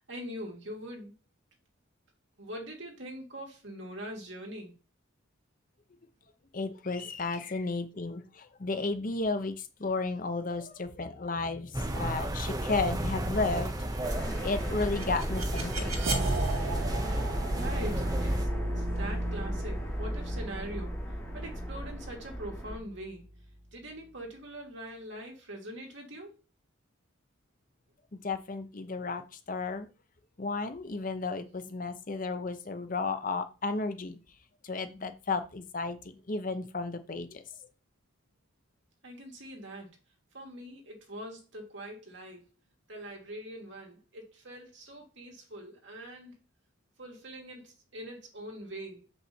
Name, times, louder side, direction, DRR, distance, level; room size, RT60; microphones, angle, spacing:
voice 1, 0.1-1.1 2.4-4.7 7.3-7.4 17.5-18.5 18.8-21.0 21.3-23.3 23.7-26.4 39.0-39.9 40.3-42.5 42.9-46.3 47.0-49.1, right 1 dB, 55° right, 2.4 m, -43 dB
voice 2, 6.5-8.2 8.6-9.5 9.8-13.7 14.4-15.9 28.2-29.2 29.5-29.9 30.4-34.2 34.7-36.0 36.3-37.4, left 3 dB, 40° left, 0.7 m, -33 dB
sound 1, 11.7-18.5, right 1 dB, 15° right, 0.7 m, -33 dB
sound 2, 14.0-22.8, equal, 15° left, 3.1 m, -37 dB
sound 3, 14.6-23.5, right 1 dB, 70° right, 1.8 m, -34 dB
6.9 x 5.5 x 4.3 m
head